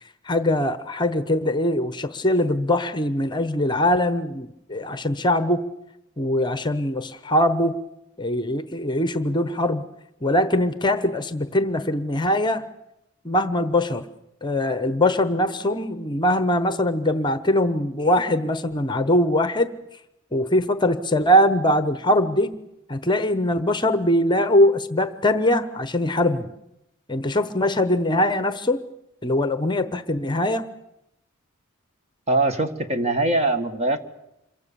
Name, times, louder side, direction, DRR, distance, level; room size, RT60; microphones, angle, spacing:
voice 1, 0.3-5.6 6.2-7.8 8.2-9.8 10.2-12.7 13.2-14.0 14.4-19.8 20.3-22.6 22.9-26.5 27.1-28.8 29.2-30.7, left 1 dB, 20° left, 11 dB, 1.0 m, -22 dB
voice 2, 32.3-34.0, right 2 dB, 30° right, 7 dB, 1.9 m, -22 dB
27.5 x 23.0 x 7.0 m, 0.86 s
head